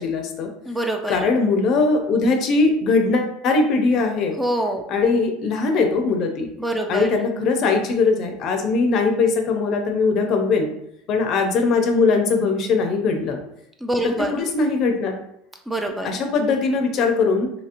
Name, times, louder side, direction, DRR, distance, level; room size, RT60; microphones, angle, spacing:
voice 1, 0.0-0.5 1.1-4.4 4.9-6.5 6.9-10.7 11.1-13.4 14.0-15.1 16.0-17.5, left 4 dB, 50° left, 5 dB, 0.5 m, -20 dB
voice 2, 0.7-1.3 4.4-4.8 6.6-7.1 13.8-14.3 15.7-16.1, right 1 dB, 5° right, 3 dB, 0.3 m, -25 dB
2.8 x 2.8 x 2.5 m, 0.75 s
supercardioid pair, 120°, 0 cm